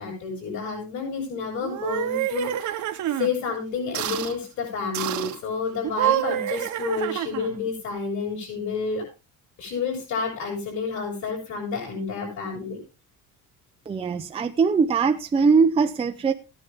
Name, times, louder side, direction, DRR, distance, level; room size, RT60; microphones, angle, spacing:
voice 1, 0.0-2.8 3.1-9.0 9.6-12.8, left 5 dB, 55° left, 6.4 m, -30 dB
sound 1, 1.6-3.3 3.9-4.4 4.9-5.4 5.8-7.6, right 13 dB, 55° right, 1.1 m, -27 dB
voice 2, 13.9-16.3, right 5 dB, 15° right, 0.6 m, -21 dB
16.0 x 9.7 x 3.6 m
cardioid pair, 175°, 35 cm